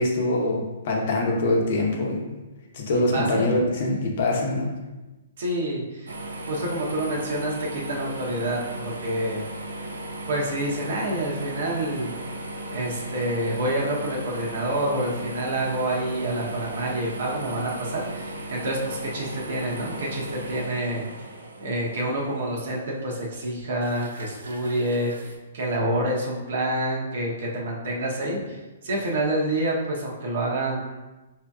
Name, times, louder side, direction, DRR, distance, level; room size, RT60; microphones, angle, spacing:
voice 1, 0.0-2.4 2.7-4.7, left 2 dB, 55° left, -1 dB, 0.8 m, -24 dB
voice 2, 3.1-3.5 5.4-6.1 6.5-9.4 10.3-12.1 12.7-21.0 21.6-30.8, right 1 dB, 65° right, -3 dB, 0.9 m, -28 dB
sound 1, 6.1-25.4, right 1 dB, 90° right, 0.5 m, -37 dB
4.9 x 2.8 x 2.3 m, 1.1 s
hypercardioid pair, 145°, 0 cm